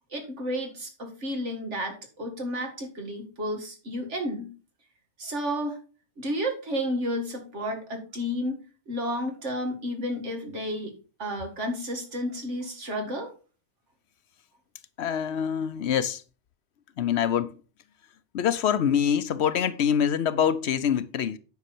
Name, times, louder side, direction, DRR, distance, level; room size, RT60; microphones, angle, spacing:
voice 1, 0.1-4.5 5.2-5.8 6.2-8.6 8.9-10.9 11.2-13.3, equal, 75° right, 2.4 m, -31 dB
voice 2, 15.0-16.2 17.0-17.5 18.3-21.4, left 8 dB, 70° left, 0.9 m, -25 dB
9.5 x 5.7 x 4.3 m
omnidirectional pair, 1.2 m